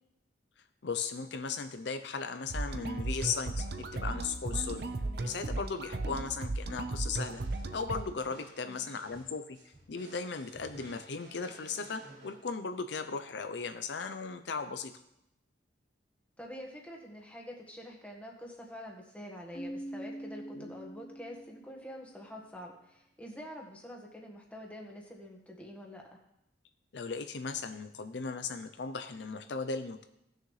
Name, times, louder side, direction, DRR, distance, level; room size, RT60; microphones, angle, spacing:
voice 1, 0.6-4.8 5.2-7.4 7.7-14.9 20.6-20.7 26.9-30.0, left 5 dB, 65° left, 9 dB, 0.5 m, -37 dB
sound 1, 2.5-8.0, right 2 dB, 55° right, 0.6 m, -36 dB
sound 2, 7.1-13.0, right 1 dB, 75° right, 3.3 m, -55 dB
voice 2, 16.4-26.2, equal, 5° left, -1 dB, 1.5 m, -46 dB
Keyboard (musical), 19.5-22.2, right 1 dB, 30° left, 0.9 m, -44 dB
17.5 x 6.6 x 3.2 m, 0.84 s
head